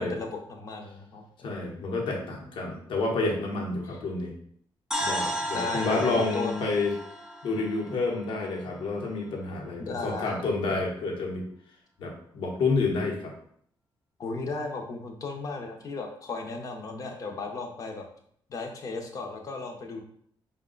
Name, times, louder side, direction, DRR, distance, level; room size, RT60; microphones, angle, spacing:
voice 1, 0.0-1.6 3.8-4.0 5.5-6.6 9.8-10.4 14.2-18.0 18.5-20.0, left 3 dB, 40° left, 3 dB, 0.7 m, -35 dB
voice 2, 1.4-4.3 5.0-6.9 7.4-11.5 12.0-13.3, left 3 dB, 70° left, 0 dB, 0.9 m, -29 dB
sound 1, 4.9-8.9, equal, 5° right, 0.5 m, -34 dB
5.1 x 2.2 x 3.8 m, 0.64 s
wide cardioid pair, 175°, 9 cm